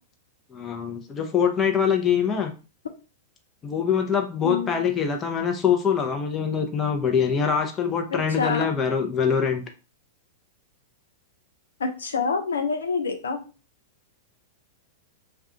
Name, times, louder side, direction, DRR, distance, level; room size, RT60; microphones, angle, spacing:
voice 1, 0.5-2.5 3.6-9.6, left 7 dB, 25° left, 4 dB, 0.6 m, -24 dB
voice 2, 8.1-8.7 11.8-13.4, left 4 dB, 80° left, 7 dB, 0.4 m, -26 dB
2.4 x 2.3 x 3.8 m, 0.33 s
hypercardioid pair, 100°, 0 cm